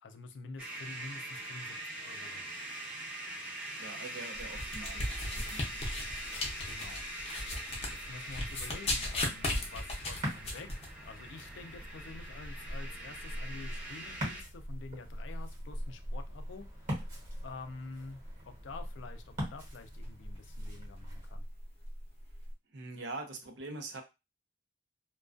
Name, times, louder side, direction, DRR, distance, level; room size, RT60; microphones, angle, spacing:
voice 1, 0.0-2.4 6.6-7.1 7.5-7.6 7.9-21.5, left 3 dB, 75° left, 8 dB, 0.4 m, -48 dB
sound 1, 0.6-14.4, right 1 dB, 10° right, 0.6 m, -43 dB
voice 2, 3.8-5.1 5.3-5.9 22.7-24.0, right 3 dB, 70° right, 4 dB, 0.6 m, -43 dB
sound 2, 4.3-22.5, left 1 dB, 35° left, 0.6 m, -39 dB
Ocean, 10.1-21.3, equal, 45° right, 1.0 m, -44 dB
2.3 x 2.2 x 2.4 m, 0.25 s
head